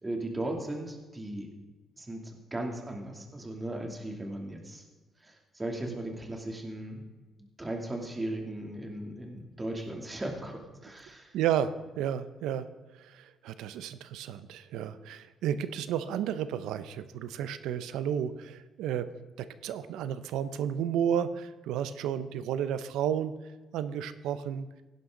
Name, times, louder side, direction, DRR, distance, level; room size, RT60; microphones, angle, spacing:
voice 1, 0.0-1.5 2.0-4.8 5.2-7.0 7.4-11.3, right 1 dB, 20° right, 1 dB, 2.8 m, -37 dB
voice 2, 11.3-12.7 13.0-19.1 19.4-23.3 23.7-24.7, right 9 dB, 90° right, 12 dB, 0.7 m, -32 dB
17.0 x 11.0 x 3.9 m, 1.2 s
cardioid pair, 90°, 0 cm